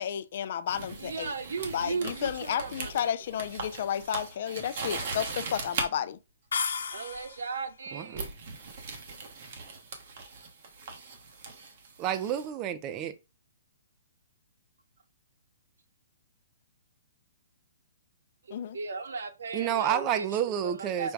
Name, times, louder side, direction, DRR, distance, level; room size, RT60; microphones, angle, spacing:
voice 1, 0.0-1.3 1.7-6.2 18.5-18.8, left 9 dB, 50° left, 0.4 m, -32 dB
sound 1, 0.7-5.9 7.1-7.4 8.1-12.5, right 4 dB, 55° right, 1.1 m, -39 dB
voice 2, 1.0-3.4 6.9-8.3 18.4-21.1, right 4 dB, 85° right, 0.9 m, -37 dB
sound 2, 6.5-7.6, left 6 dB, 90° left, 0.9 m, -33 dB
voice 3, 7.9-8.2 12.0-13.2 19.5-21.1, right 10 dB, 25° right, 0.5 m, -30 dB
5.2 x 2.2 x 4.6 m
hypercardioid pair, 160°, 0 cm